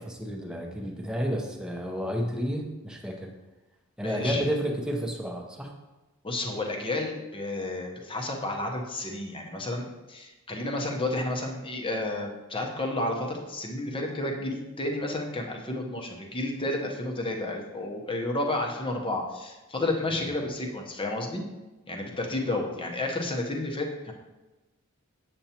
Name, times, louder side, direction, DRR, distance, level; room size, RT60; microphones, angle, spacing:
voice 1, 0.1-3.3 4.0-5.7 20.1-20.3, equal, 5° right, 1 dB, 0.8 m, -31 dB
voice 2, 4.0-4.4 6.2-21.4 21.9-24.1, left 2 dB, 25° left, 1 dB, 0.9 m, -31 dB
7.8 x 6.9 x 2.9 m, 1.1 s
head